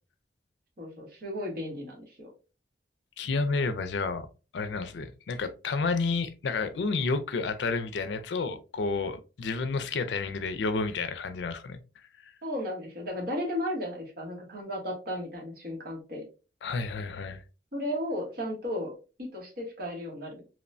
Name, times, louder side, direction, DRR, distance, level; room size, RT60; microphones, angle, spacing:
voice 1, 0.8-2.3 12.4-16.3 17.7-20.4, left 1 dB, 55° right, 1.1 m, -35 dB
voice 2, 3.2-4.3 4.5-11.8 12.2-12.3 16.6-17.4, left 4 dB, 85° left, 0.4 m, -30 dB
2.9 x 2.1 x 2.4 m
head